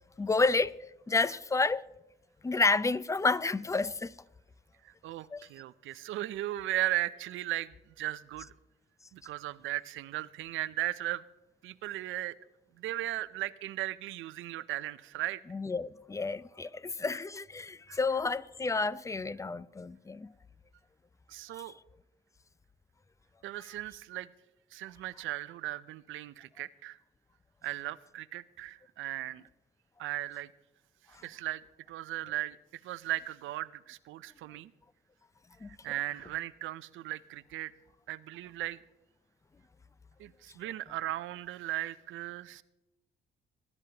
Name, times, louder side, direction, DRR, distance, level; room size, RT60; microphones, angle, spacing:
voice 1, 0.2-0.8 1.1-1.8 2.4-4.1 5.3-5.5 15.5-20.3 35.6-35.7, left 3 dB, 15° left, 0.5 m, -30 dB
voice 2, 4.8-8.5 9.1-11.2 11.6-12.3 12.8-15.4 17.9-18.0 21.3-21.8 23.4-24.3 24.7-27.0 27.6-29.4 30.0-30.5 31.2-31.6 31.9-32.6 32.8-34.7 35.8-37.7 38.1-38.8 40.2-42.6, right 15 dB, 85° right, 0.6 m, -37 dB
21.5 x 11.0 x 2.9 m
cardioid pair, 90°, 20 cm